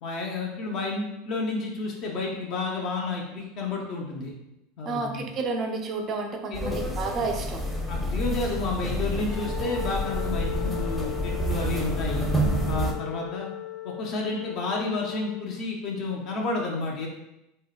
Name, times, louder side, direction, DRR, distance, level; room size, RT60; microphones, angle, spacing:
voice 1, 0.0-4.3 4.8-5.2 6.5-6.8 7.9-12.3 12.7-13.5 13.8-17.1, left 3 dB, 55° left, -1 dB, 0.4 m, -31 dB
voice 2, 4.8-7.6, right 3 dB, 40° right, 3 dB, 0.4 m, -30 dB
sound 1, 6.5-12.9, equal, 5° left, 0.5 m, -29 dB
Wind instrument woodwind instrument, 9.2-15.5, left 13 dB, 85° left, 1.3 m, -37 dB
2.7 x 2.1 x 2.3 m, 0.89 s
hypercardioid pair, 85°, 0 cm